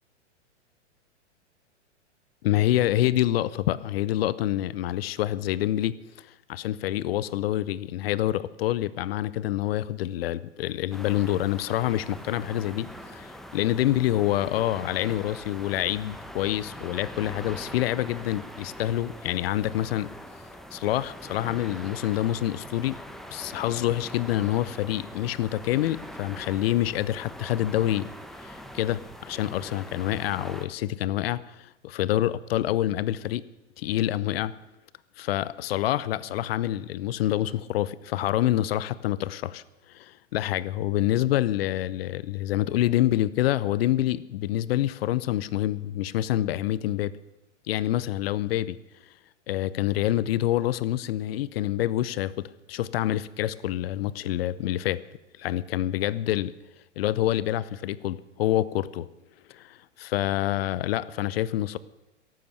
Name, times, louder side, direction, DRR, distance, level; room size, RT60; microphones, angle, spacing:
voice 1, 2.4-20.1 20.7-23.0 23.3-28.1 28.4-33.4 33.8-34.5 35.2-39.6 39.9-47.1 47.7-48.8 49.5-55.0 55.4-56.5 57.0-59.1 59.5-61.8, left 13 dB, 55° left, 18 dB, 0.7 m, -27 dB
sound 1, 10.9-30.7, equal, ahead, 1.1 m, -42 dB
14.0 x 12.0 x 6.6 m, 0.98 s
hypercardioid pair, 110°, 36 cm